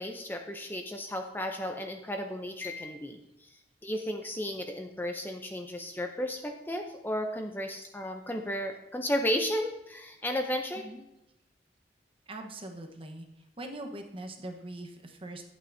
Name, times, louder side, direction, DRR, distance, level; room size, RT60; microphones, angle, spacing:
voice 1, 0.0-10.9, left 1 dB, 10° left, 4 dB, 0.6 m, -34 dB
voice 2, 12.3-13.3 13.6-15.4, right 1 dB, 30° right, 4 dB, 1.1 m, -42 dB
12.0 x 8.4 x 2.7 m, 0.90 s
head